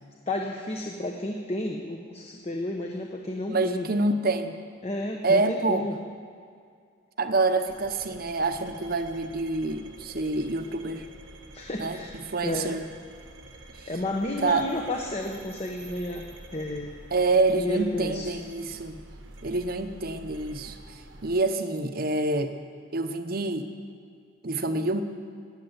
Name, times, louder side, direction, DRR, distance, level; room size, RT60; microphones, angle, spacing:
voice 1, 0.3-3.9 4.8-6.0 11.5-12.2 12.4-12.7 13.7-16.9 17.5-18.3, left 1 dB, 30° left, 1 dB, 1.0 m, -32 dB
voice 2, 3.5-4.5 5.2-5.9 7.2-11.1 11.8-12.8 13.7-13.9 14.4-14.7 17.1-19.0 19.4-22.5 22.9-23.7 24.4-25.0, right 3 dB, 50° right, 8 dB, 0.9 m, -27 dB
sound 1, 7.7-21.4, right 2 dB, 80° right, 1.3 m, -48 dB
15.5 x 9.9 x 8.1 m, 2.2 s
head